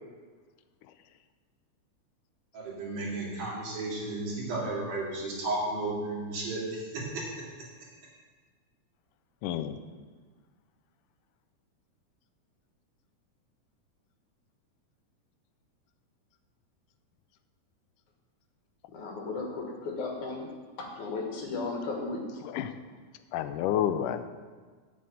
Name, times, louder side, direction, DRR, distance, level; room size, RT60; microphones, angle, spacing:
voice 1, 2.5-7.2, right 2 dB, 80° right, -5 dB, 4.4 m, -33 dB
voice 2, 9.4-9.8 22.5-22.7 23.3-24.2, left 10 dB, 90° left, 10 dB, 2.2 m, -29 dB
voice 3, 18.9-20.5 20.8-22.4, left 3 dB, 70° left, 1 dB, 3.0 m, -35 dB
7.8 x 7.7 x 8.5 m, 1.5 s
omnidirectional pair, 3.6 m